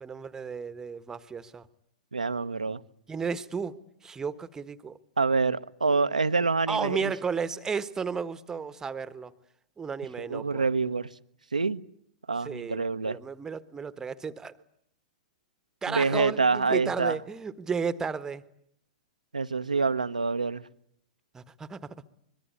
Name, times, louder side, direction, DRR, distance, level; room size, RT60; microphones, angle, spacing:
voice 1, 0.0-1.6 3.1-5.0 6.7-9.3 9.8-10.6 12.4-14.5 15.8-18.4 21.3-21.9, right 5 dB, 15° right, 1.4 m, -33 dB
voice 2, 2.1-2.8 5.2-7.1 10.2-11.1 11.5-11.8 12.3-13.2 15.9-17.2 19.3-20.6, right 4 dB, 80° right, 1.1 m, -26 dB
25.0 x 23.0 x 9.8 m
figure-of-eight pair, 105°, 4 cm